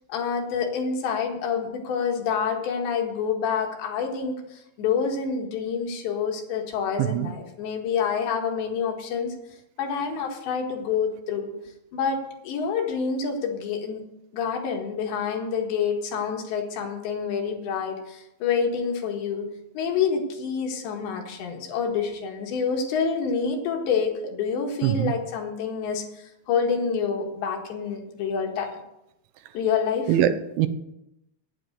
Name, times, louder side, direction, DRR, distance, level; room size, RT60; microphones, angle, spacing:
voice 1, 0.1-9.4 9.8-11.5 11.9-14.0 14.3-19.5 19.8-28.7 29.5-30.2, left 6 dB, 70° left, 1 dB, 3.8 m, -27 dB
voice 2, 30.1-30.7, right 11 dB, 80° right, 11 dB, 3.1 m, -22 dB
9.2 x 9.2 x 8.0 m, 0.85 s
omnidirectional pair, 5.6 m